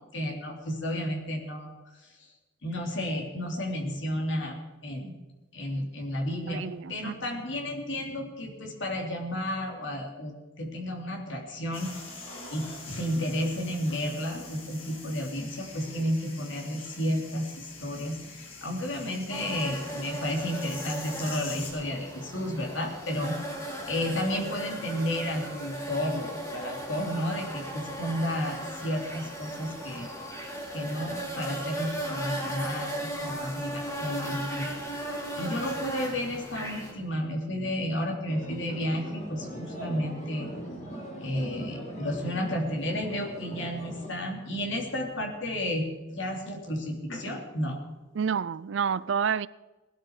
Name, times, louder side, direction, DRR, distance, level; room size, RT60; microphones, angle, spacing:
voice 1, 0.0-1.7 2.2-2.3 2.6-5.1 5.5-11.9 12.5-23.4 23.9-30.1 30.7-34.7 34.9-35.1 35.4-40.5 41.2-47.8, equal, 60° left, 3.3 m, -32 dB
voice 2, 6.5-7.4 48.1-49.5, right 7 dB, 60° right, 0.4 m, -29 dB
sound 1, 11.7-21.7, left 3 dB, 80° left, 6.4 m, -44 dB
sound 2, 19.3-36.9, right 1 dB, 15° left, 3.5 m, -37 dB
sound 3, 38.3-44.1, equal, 35° left, 3.9 m, -40 dB
19.0 x 12.5 x 4.9 m
head